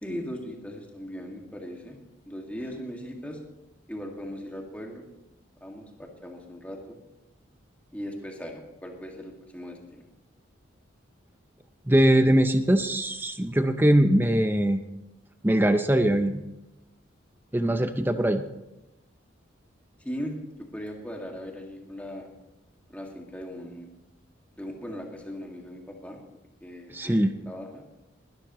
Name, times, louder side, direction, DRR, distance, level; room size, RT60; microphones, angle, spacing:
voice 1, 0.0-2.0 2.3-3.4 3.9-5.1 5.6-7.0 7.9-10.0 20.0-22.3 22.9-23.9 24.5-26.2 26.6-27.9, equal, 5° left, 0 dB, 2.0 m, -38 dB
voice 2, 11.9-14.8 15.4-16.4 17.5-18.4 26.9-27.3, right 1 dB, 10° right, 8 dB, 0.5 m, -21 dB
20.0 x 13.5 x 3.1 m, 0.96 s
head